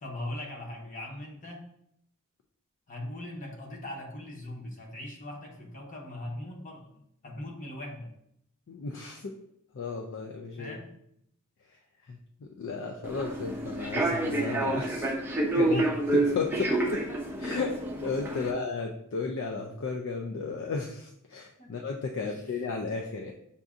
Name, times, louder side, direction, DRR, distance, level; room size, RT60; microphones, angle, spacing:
voice 1, 0.0-1.7 2.9-6.9 7.2-8.2 10.6-11.0 15.7-15.9 17.5-17.6 18.3-18.5 21.6-21.7 22.2-22.4, left 1 dB, 35° left, -1 dB, 0.8 m, -40 dB
voice 2, 8.7-9.4 9.7-10.8 12.1-15.1 15.5-15.8 16.1-17.0 17.4-17.7 18.0-23.3, left 4 dB, 60° left, 1 dB, 0.4 m, -34 dB
Human voice / Subway metro underground, 13.0-18.5, right 2 dB, 10° right, 0.5 m, -28 dB
6.8 x 2.6 x 2.4 m, 0.75 s
head